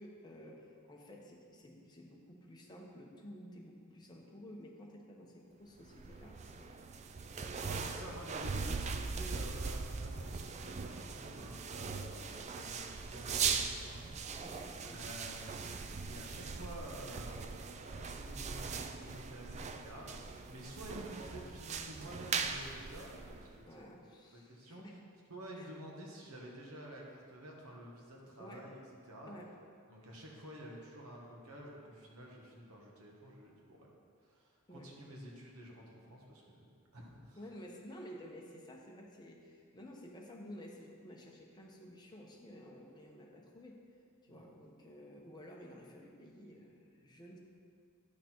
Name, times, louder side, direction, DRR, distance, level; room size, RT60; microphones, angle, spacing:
voice 1, 0.0-6.8 7.1-8.0 14.4-15.0 20.9-21.4 23.7-25.0 25.5-25.7 28.4-28.7 29.3-29.5 34.7-34.9 37.4-43.8 44.2-47.4, equal, 20° left, -1 dB, 1.0 m, -52 dB
sound 1, 5.8-23.7, right 5 dB, 30° right, 0.4 m, -40 dB
voice 2, 7.4-14.6 14.8-23.8 24.3-24.8 25.3-28.8 29.0-29.3 29.9-33.9 34.2-36.7 36.9-37.4 44.3-44.4, right 1 dB, 85° right, -2 dB, 1.6 m, -50 dB
10.5 x 5.9 x 4.5 m, 2.2 s
head